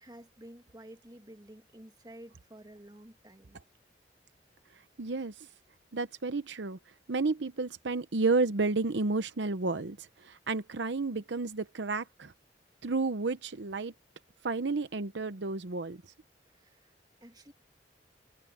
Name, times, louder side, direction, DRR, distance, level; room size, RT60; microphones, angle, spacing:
voice 1, 0.0-3.6 16.5-16.9 17.2-17.5, right 1 dB, 20° right, 2.1 m, -51 dB
voice 2, 5.0-5.5 5.9-6.8 7.1-12.3 12.8-13.9 14.4-16.0, right 3 dB, 75° right, 0.8 m, -31 dB
head